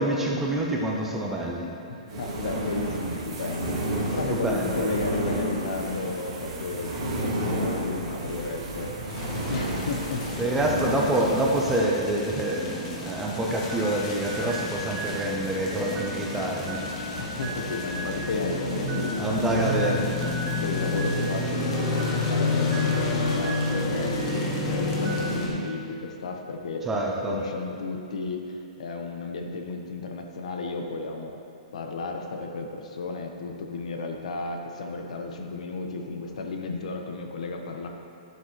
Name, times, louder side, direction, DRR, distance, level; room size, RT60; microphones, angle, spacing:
voice 1, 0.0-1.7 4.3-4.8 10.4-16.8 19.2-20.0 26.9-27.4, right 1 dB, 5° right, -2 dB, 0.5 m, -26 dB
voice 2, 1.9-6.9 7.2-10.5 10.8-11.1 17.2-19.7 20.6-26.8 27.2-31.4 31.7-37.9, left 3 dB, 60° left, 3 dB, 1.0 m, -33 dB
sound 1, 2.1-11.8, right 1 dB, 45° right, 2.1 m, -31 dB
sound 2, 9.1-25.5, left 2 dB, 25° left, 1.3 m, -30 dB
sound 3, 13.7-24.6 24.9-25.8, right 1 dB, 25° right, 1.2 m, -39 dB
11.5 x 8.2 x 3.1 m, 2.7 s
hypercardioid pair, 175°, 4 cm